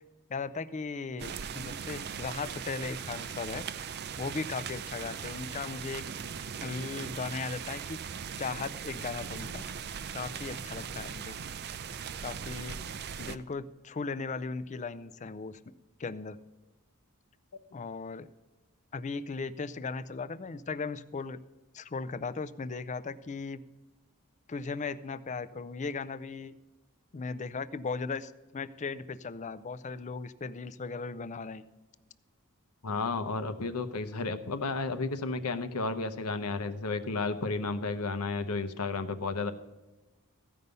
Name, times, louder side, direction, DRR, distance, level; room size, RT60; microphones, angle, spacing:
voice 1, 0.3-3.6 4.2-6.1 6.6-8.0 8.4-9.6 10.1-11.4 12.2-12.8 13.2-15.6 16.0-16.4 17.7-18.3 18.9-21.4 21.7-23.6 24.5-26.5 27.1-31.6, left 4 dB, 30° left, 15 dB, 0.4 m, -37 dB
sound 1, 1.2-13.4, right 7 dB, 45° right, 0.4 m, -39 dB
voice 2, 32.8-39.5, left 3 dB, 80° left, 10 dB, 0.8 m, -32 dB
15.0 x 5.4 x 6.7 m, 1.1 s
head